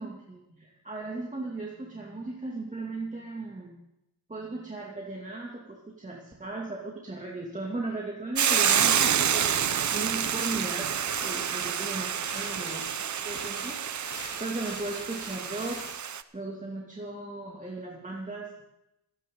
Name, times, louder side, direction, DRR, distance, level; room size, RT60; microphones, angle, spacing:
voice 1, 0.0-3.8 4.3-9.5 9.9-10.9 11.2-12.9 13.2-13.8 14.4-15.9 16.3-18.6, right 2 dB, 20° right, -2 dB, 2.6 m, -37 dB
Hiss / Boiling, 8.4-16.2, right 8 dB, 45° right, 0.9 m, -28 dB
sound 1, 9.0-15.9, left 4 dB, 35° left, 3.9 m, -46 dB
27.0 x 10.5 x 4.0 m, 0.89 s
cardioid pair, 80°, 40 cm